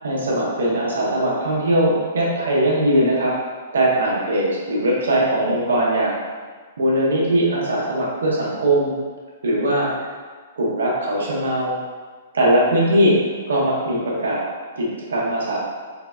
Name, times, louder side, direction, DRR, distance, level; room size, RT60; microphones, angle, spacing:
voice 1, 0.0-3.3 3.7-6.2 6.8-8.9 9.4-9.9 10.6-11.8 12.3-13.2 13.5-14.4 14.8-15.6, right 1 dB, 85° right, -4 dB, 0.9 m, -20 dB
3.8 x 2.1 x 2.3 m, 1.5 s
hypercardioid pair, 130°, 0 cm